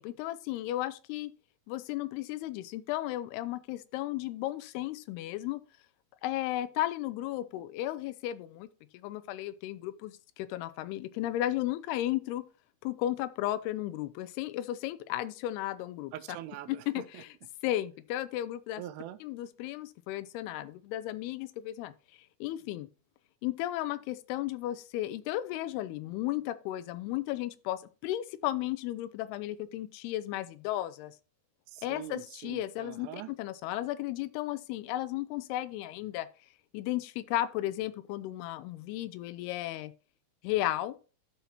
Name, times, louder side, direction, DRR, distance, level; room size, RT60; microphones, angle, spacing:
voice 1, 0.0-1.3 1.7-5.6 6.2-8.7 8.9-12.4 12.8-16.1 16.9-17.3 17.6-18.8 19.2-21.9 22.4-22.9 23.4-31.1 31.8-36.3 36.7-39.9 40.4-41.0, left 14 dB, 85° left, 2.5 m, -34 dB
voice 2, 16.1-17.2 18.8-19.2 31.7-33.3, right 13 dB, 90° right, 2.7 m, -43 dB
12.5 x 5.7 x 2.9 m
omnidirectional pair, 4.7 m